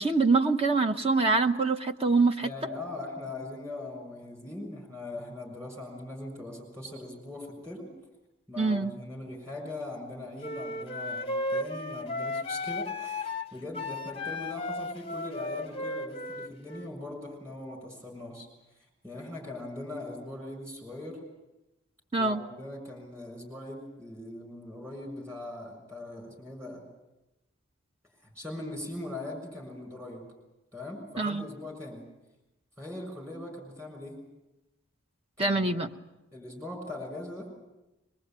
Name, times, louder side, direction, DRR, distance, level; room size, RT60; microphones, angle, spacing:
voice 1, 0.0-2.5 8.6-8.9 22.1-22.4 31.2-31.5 35.4-35.9, right 3 dB, 30° right, 6 dB, 1.1 m, -25 dB
voice 2, 2.4-7.9 8.5-18.5 19.0-21.2 22.2-26.8 28.2-30.2 30.7-32.0 32.8-34.2 35.4-35.8 36.3-37.5, left 2 dB, 15° right, 1 dB, 6.6 m, -40 dB
sound 1, 10.4-16.9, left 2 dB, 25° left, 0.8 m, -34 dB
23.0 x 22.0 x 9.0 m, 0.96 s
head